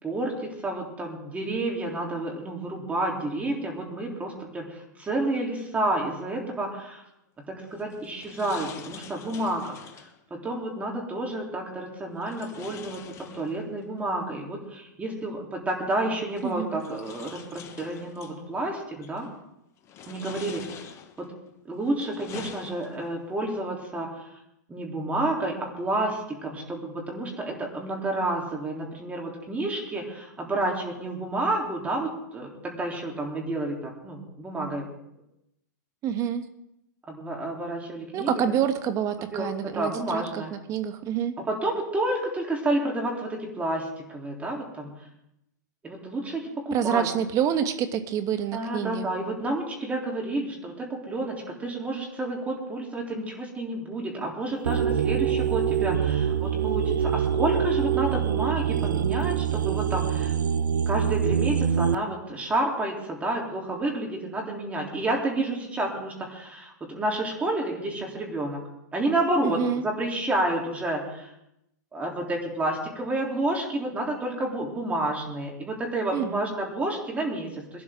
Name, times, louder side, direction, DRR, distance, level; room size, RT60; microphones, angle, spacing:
voice 1, 0.0-7.0 7.5-19.3 20.1-20.9 21.2-21.3 21.7-24.3 24.7-34.9 37.1-38.4 39.3-40.5 41.4-44.9 45.8-47.1 48.5-60.3 60.9-68.6 68.9-71.3 71.9-77.8, right 2 dB, 15° right, 0 dB, 3.5 m, -30 dB
sound 1, 7.7-10.2 12.2-13.9 15.2-15.3 16.3-18.4 19.0-19.4 19.8-21.3 21.8-23.2, left 8 dB, 30° left, 1.4 m, -45 dB
voice 2, 16.4-16.8 36.0-36.4 38.1-41.3 46.7-49.1 69.4-69.8 76.1-76.5, right 8 dB, 35° right, 9 dB, 1.5 m, -27 dB
sound 2, 54.6-61.9, right 8 dB, 85° right, 0.7 m, -25 dB
21.0 x 12.5 x 3.8 m, 0.83 s
hypercardioid pair, 125°, 10 cm